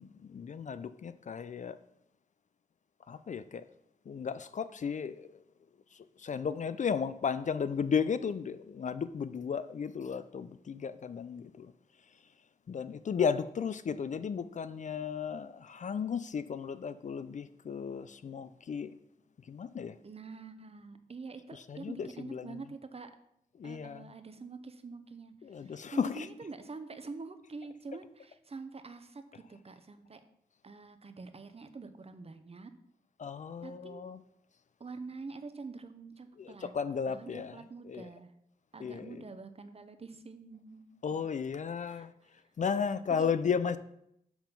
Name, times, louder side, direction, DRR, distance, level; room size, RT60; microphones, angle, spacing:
voice 1, 0.0-1.8 3.1-3.6 4.1-5.4 5.9-11.7 12.7-18.9 19.5-20.0 21.5-22.6 23.6-24.1 25.4-26.3 33.2-34.2 36.4-38.1 38.8-39.2 41.0-42.1 42.6-43.8, left 6 dB, 50° left, 0.4 m, -34 dB
voice 2, 20.0-23.1 23.6-30.2 30.6-32.7 33.6-34.1 34.8-36.7 37.1-38.3 38.7-40.8 41.9-42.4 43.1-43.3, right 4 dB, 40° right, 0.7 m, -46 dB
7.0 x 3.7 x 5.7 m
cardioid pair, 50°, 16 cm